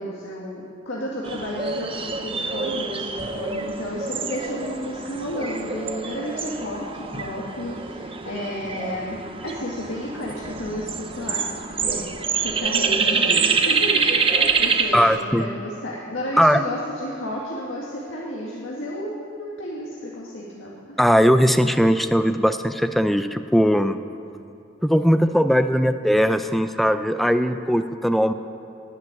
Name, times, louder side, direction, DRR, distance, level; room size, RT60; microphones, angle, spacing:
voice 1, 0.0-11.5 11.8-12.1 12.4-21.0, equal, 65° left, -4 dB, 1.9 m, -32 dB
sound 1, 1.2-15.2, right 5 dB, 30° right, 0.7 m, -26 dB
voice 2, 14.9-15.5 16.4-16.6 21.0-24.0 24.8-28.3, equal, ahead, 9 dB, 0.4 m, -19 dB
11.0 x 10.0 x 9.5 m, 2.6 s
head